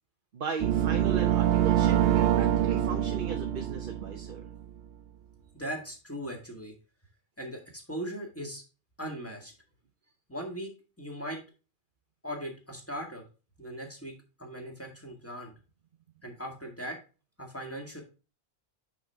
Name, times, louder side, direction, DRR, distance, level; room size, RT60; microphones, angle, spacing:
voice 1, 0.3-4.5, right 5 dB, 55° right, 4 dB, 1.0 m, -37 dB
sound 1, 0.6-4.6, right 11 dB, 80° right, 0.8 m, -25 dB
voice 2, 5.5-6.7 7.4-8.6 9.0-9.5 10.3-10.7 11.0-11.4 12.2-13.2 13.6-14.1 14.4-15.5 16.2-17.0 17.4-18.0, equal, 10° left, 1 dB, 1.9 m, -39 dB
6.2 x 6.0 x 3.3 m, 0.33 s
omnidirectional pair, 1.1 m